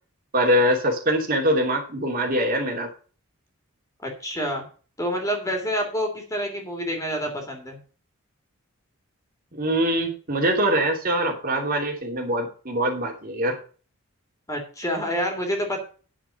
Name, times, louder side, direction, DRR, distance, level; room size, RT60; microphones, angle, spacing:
voice 1, 0.3-2.9 9.5-13.6, equal, 40° right, 2 dB, 2.8 m, -23 dB
voice 2, 4.0-4.6 5.0-7.8 14.5-15.8, equal, 15° left, 2 dB, 3.0 m, -28 dB
10.0 x 7.4 x 5.8 m, 0.38 s
head